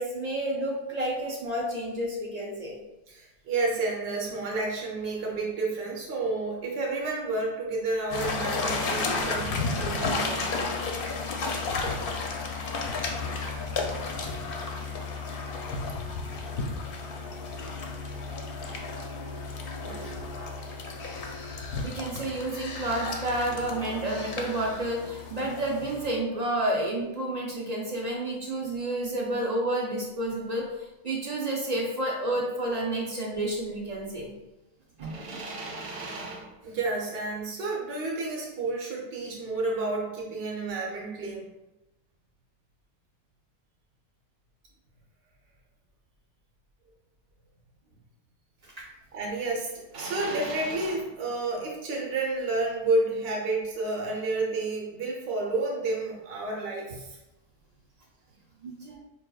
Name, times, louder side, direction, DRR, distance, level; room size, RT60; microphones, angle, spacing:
voice 1, 0.0-2.8 21.8-30.7 31.0-34.3 35.0-35.4 58.6-59.0, right 1 dB, 50° right, -2 dB, 0.5 m, -30 dB
voice 2, 3.1-10.6 11.6-11.7 19.8-20.1 35.0-41.4 49.1-57.2, right 2 dB, 65° right, -2 dB, 1.0 m, -31 dB
sound 1, 8.1-26.2, left 3 dB, 60° left, 0.7 m, -33 dB
4.5 x 2.7 x 2.2 m, 0.97 s
omnidirectional pair, 1.1 m